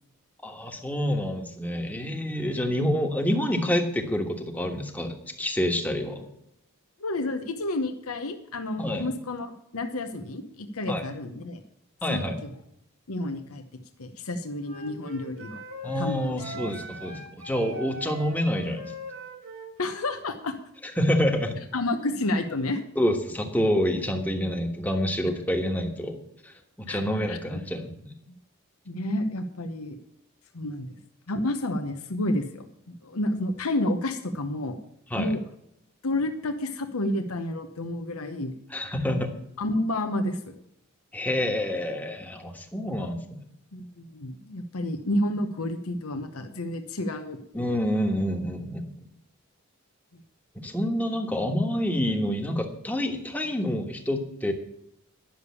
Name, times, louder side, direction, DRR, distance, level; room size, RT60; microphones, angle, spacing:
voice 1, 0.4-6.3 8.8-9.1 10.9-11.0 12.0-12.4 15.8-18.9 21.0-21.6 22.9-28.1 35.1-35.3 38.7-39.3 41.1-43.4 47.5-48.9 50.6-54.5, equal, 5° left, 3 dB, 1.3 m, -27 dB
voice 2, 7.0-11.6 12.1-12.5 13.1-13.6 14.0-15.6 16.0-16.6 19.8-20.6 21.7-22.8 26.9-27.4 28.9-30.0 30.5-30.9 31.3-34.8 35.2-35.4 36.0-38.5 39.6-40.6 43.7-47.4 50.1-50.2, left 1 dB, 85° left, 6 dB, 1.0 m, -30 dB
Wind instrument woodwind instrument, 14.6-20.1, right 1 dB, 70° right, 2.0 m, -41 dB
10.5 x 7.0 x 8.3 m, 0.77 s
head